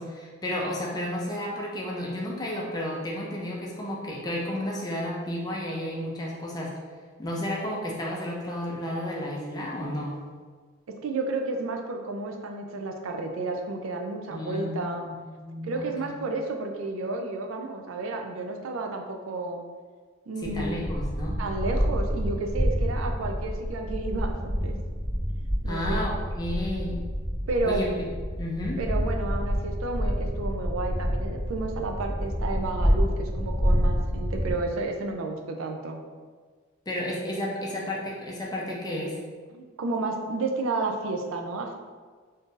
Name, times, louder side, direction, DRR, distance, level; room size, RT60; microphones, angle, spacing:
voice 1, 0.0-6.7 7.2-10.2 14.3-16.1 20.4-21.4 25.7-27.0 27.6-28.1 28.4-28.8 36.9-39.2, left 1 dB, 20° left, -3 dB, 0.4 m, -32 dB
voice 2, 11.0-15.0 15.6-19.6 20.3-20.8 21.4-24.8 25.6-26.0 27.5-27.8 28.8-36.0 39.5-41.8, right 3 dB, 75° right, 3 dB, 0.4 m, -31 dB
sound 1, 20.4-34.5, equal, ahead, 0.9 m, -28 dB
2.6 x 2.5 x 3.7 m, 1.5 s
head